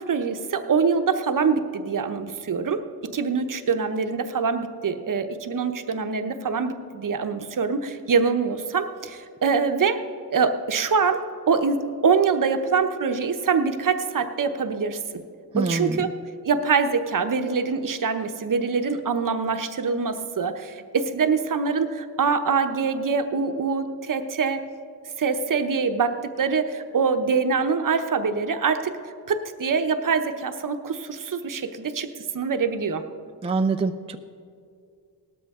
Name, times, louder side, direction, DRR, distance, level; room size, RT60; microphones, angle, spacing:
voice 1, 0.0-10.0 10.3-15.0 15.6-16.1 16.4-24.6 25.2-28.9 29.3-32.1 32.3-33.0, right 5 dB, 50° right, 8 dB, 0.8 m, -24 dB
voice 2, 15.5-16.1 33.4-34.2, right 4 dB, 15° right, 7 dB, 0.3 m, -25 dB
18.0 x 13.0 x 3.6 m, 2.4 s
wide cardioid pair, 105°, 41 cm